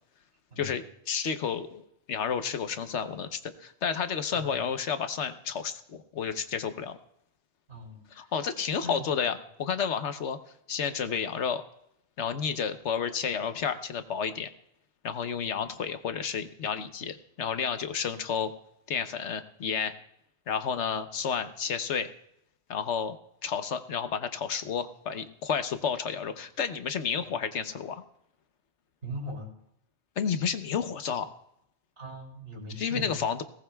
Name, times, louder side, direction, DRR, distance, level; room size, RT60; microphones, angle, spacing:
voice 1, 1.1-1.8 2.1-7.0 8.1-10.4 10.7-11.6 12.2-14.5 15.0-18.5 18.9-19.9 20.5-22.1 22.7-23.2 23.4-28.0 30.2-31.3 32.8-33.4, left 7 dB, 85° left, 9 dB, 1.2 m, -31 dB
voice 2, 4.3-4.6 7.7-8.3 8.8-9.1 27.2-27.3 29.0-29.5 32.0-33.2, equal, 90° right, -4 dB, 4.1 m, -40 dB
20.0 x 18.5 x 2.3 m, 0.76 s
omnidirectional pair, 1.2 m